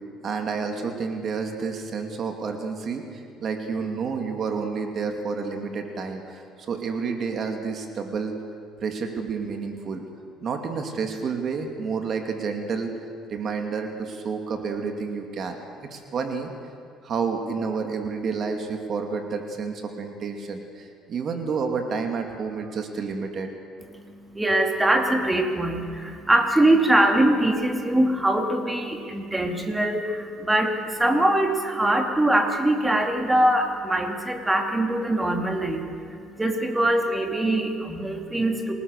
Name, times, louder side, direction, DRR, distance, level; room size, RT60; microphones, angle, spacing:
voice 1, 0.2-8.3 8.8-10.0 10.4-12.9 13.3-16.5 17.0-23.5, right 5 dB, 45° right, 4 dB, 2.6 m, -30 dB
voice 2, 23.9-38.7, right 1 dB, 10° right, 3 dB, 2.7 m, -23 dB
27.0 x 19.5 x 6.7 m, 2.4 s
cardioid pair, 125°, 0 cm